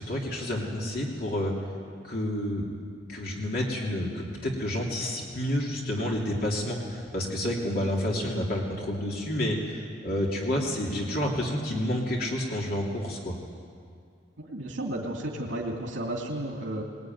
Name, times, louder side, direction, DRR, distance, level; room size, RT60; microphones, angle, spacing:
voice 1, 0.0-1.5 2.0-2.6 3.1-13.3, left 1 dB, 50° left, -2 dB, 3.0 m, -29 dB
voice 2, 14.4-16.8, right 1 dB, 80° right, -1 dB, 2.8 m, -33 dB
21.0 x 21.0 x 9.5 m, 2.2 s
head